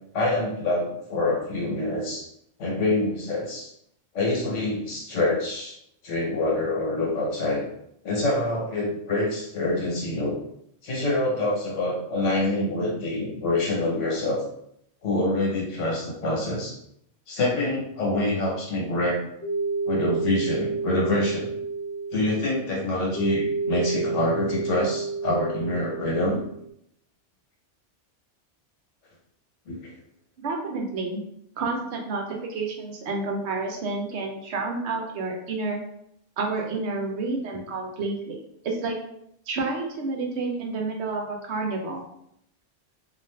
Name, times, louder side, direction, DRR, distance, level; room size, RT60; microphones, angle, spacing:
voice 1, 0.1-2.2 2.6-3.7 4.1-5.7 6.0-7.6 8.0-10.4 10.8-14.4 15.0-16.7 17.3-19.2 19.9-21.5 22.1-26.4 29.7-29.9, left 2 dB, 85° left, -2 dB, 1.3 m, -26 dB
sound 1, 19.4-26.7, right 4 dB, 40° left, 0.8 m, -30 dB
voice 2, 30.4-31.2 31.6-35.8 36.4-39.0 39.5-42.0, right 3 dB, 70° right, 1 dB, 0.9 m, -30 dB
2.5 x 2.5 x 3.2 m, 0.74 s
omnidirectional pair, 1.2 m